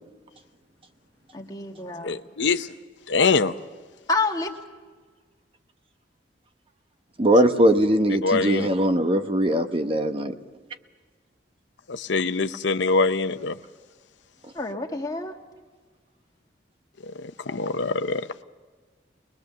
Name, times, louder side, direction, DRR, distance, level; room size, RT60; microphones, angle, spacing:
voice 1, 1.3-2.1 4.1-4.5 14.5-15.4, left 3 dB, 20° left, 1 dB, 1.7 m, -28 dB
voice 2, 2.0-2.7 3.1-3.5 8.2-8.9 11.9-13.6 17.2-18.3, left 4 dB, 80° left, 10 dB, 0.7 m, -24 dB
voice 3, 7.2-10.3, right 1 dB, 30° right, 7 dB, 0.9 m, -20 dB
23.0 x 20.5 x 6.8 m, 1.5 s
head